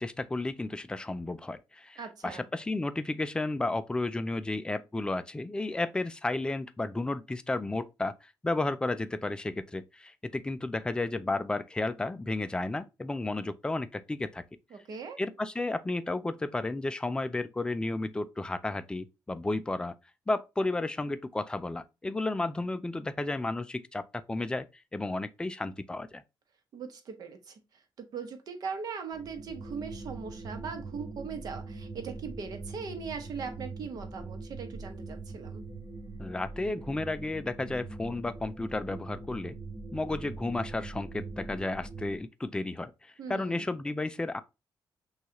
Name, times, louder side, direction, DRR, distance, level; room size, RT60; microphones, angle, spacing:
voice 1, 0.0-14.4 15.2-19.9 20.3-24.7 24.9-26.2 36.2-39.6 39.9-44.4, left 2 dB, 10° left, 0.3 m, -33 dB
voice 2, 2.0-2.4 14.7-15.2 26.7-27.6 28.0-35.7 43.2-43.6, right 5 dB, 55° right, 0.9 m, -40 dB
sound 1, 29.1-42.2, right 3 dB, 40° right, 1.6 m, -42 dB
6.0 x 2.4 x 2.9 m
cardioid pair, 150°, 8 cm